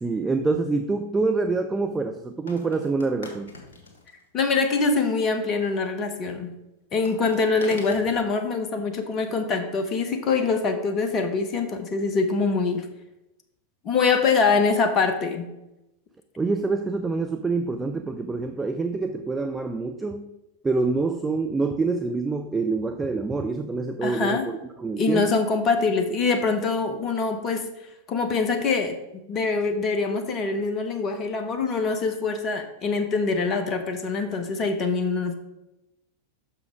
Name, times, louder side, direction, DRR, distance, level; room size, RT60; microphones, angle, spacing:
voice 1, 0.0-3.5 16.4-20.3 20.6-25.4, right 3 dB, 10° right, 7 dB, 0.4 m, -26 dB
sound 1, 1.2-1.3 2.5-4.4 7.1-8.3, left 2 dB, 65° left, 1.6 m, -41 dB
voice 2, 4.3-6.5 6.9-12.9 13.8-15.5 24.0-24.4 25.0-27.7 28.1-35.3, left 4 dB, 30° left, 6 dB, 0.9 m, -24 dB
6.2 x 5.8 x 4.8 m, 0.92 s
figure-of-eight pair, 90°, 0 cm